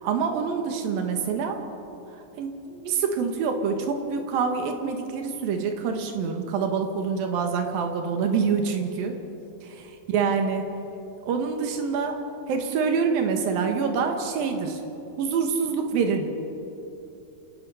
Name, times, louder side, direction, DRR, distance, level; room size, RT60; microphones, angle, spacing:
voice 1, 0.0-1.6 2.4-9.1 9.6-10.7 11.3-12.2 12.5-14.8 15.2-16.3, right 5 dB, 85° right, 4 dB, 3.3 m, -26 dB
29.0 x 18.0 x 5.7 m, 2.9 s
omnidirectional pair, 4.0 m